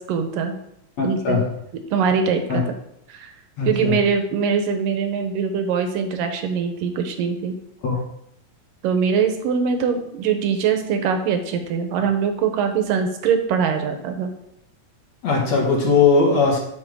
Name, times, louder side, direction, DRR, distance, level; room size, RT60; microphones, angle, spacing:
voice 1, 0.1-0.6 1.0-1.4 1.9-2.6 3.1-3.3 3.7-7.6 8.8-14.3, right 6 dB, 75° right, 6 dB, 2.6 m, -22 dB
voice 2, 1.0-1.5 2.5-2.6 3.6-4.0 7.8-8.0 15.2-16.6, left 4 dB, 55° left, -1 dB, 2.4 m, -19 dB
10.0 x 7.2 x 3.8 m, 0.76 s
omnidirectional pair, 4.2 m